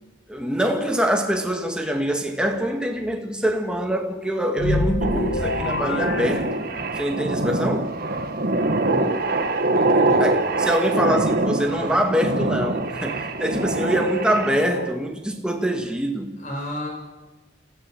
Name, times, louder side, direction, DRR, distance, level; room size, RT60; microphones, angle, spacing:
voice 1, 0.3-6.7 7.0-7.9 10.2-16.4, equal, 5° right, 2.1 m, -24 dB
sound 1, 4.6-7.1, left 2 dB, 80° left, 1.8 m, -26 dB
sound 2, 5.0-14.9, right 2 dB, 55° right, 1.5 m, -24 dB
voice 2, 8.8-9.2 9.7-10.3 16.4-16.9, left 1 dB, 40° left, 6.2 m, -32 dB
26.5 x 15.5 x 7.8 m
head